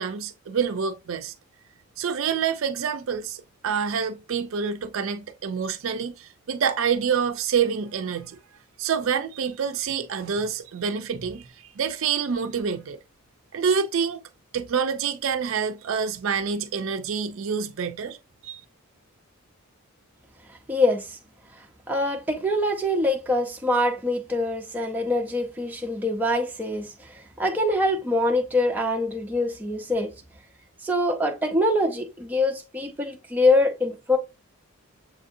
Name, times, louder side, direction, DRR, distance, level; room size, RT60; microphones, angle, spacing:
voice 1, 0.0-1.3 2.0-8.4 8.8-13.0 13.5-14.2 14.5-18.2 18.4-18.6, right 6 dB, 65° right, 0.4 m, -27 dB
voice 2, 20.7-21.2 21.9-30.1 30.8-34.2, left 1 dB, 10° right, 0.5 m, -24 dB
7.1 x 2.6 x 2.6 m
head